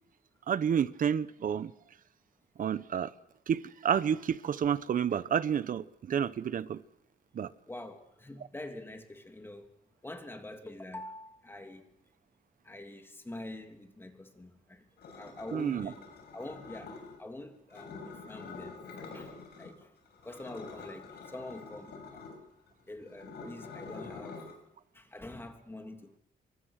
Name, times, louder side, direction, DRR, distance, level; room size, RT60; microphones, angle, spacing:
voice 1, 0.5-1.7 2.6-3.1 3.5-6.8 7.3-7.5 15.5-15.9, right 8 dB, 55° right, 1.1 m, -30 dB
voice 2, 7.7-9.8 10.0-11.9 12.6-14.8 15.1-19.9 20.2-22.3 22.9-24.4 24.9-26.2, left 1 dB, 15° left, 3.0 m, -45 dB
sound 1, 15.0-17.2 17.7-19.7 20.1-24.5, left 4 dB, 90° left, 6.7 m, -46 dB
28.0 x 24.0 x 6.6 m
cardioid pair, 130°, 16 cm